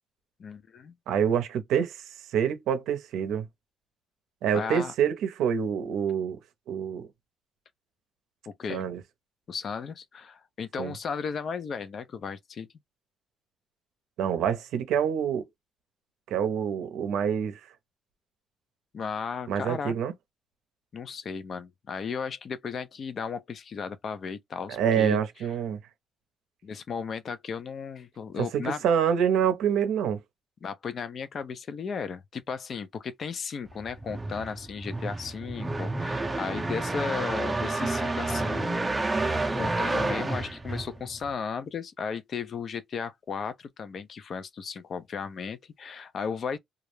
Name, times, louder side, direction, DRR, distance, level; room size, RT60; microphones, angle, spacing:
voice 1, 0.4-0.9 4.5-4.9 8.5-8.9 9.5-12.7 18.9-19.9 20.9-25.2 26.6-28.8 30.6-39.3 39.5-46.6, left 6 dB, 55° left, 0.4 m, -35 dB
voice 2, 1.1-2.0 2.3-3.5 4.4-6.4 6.7-7.1 8.7-9.0 10.8-10.9 14.2-15.4 16.3-17.6 19.5-20.1 24.7-25.8 28.5-30.2, right 8 dB, 85° right, 0.6 m, -26 dB
sound 1, 33.7-41.3, right 2 dB, 20° right, 0.5 m, -30 dB
2.3 x 2.0 x 3.0 m
cardioid pair, 90°, 0 cm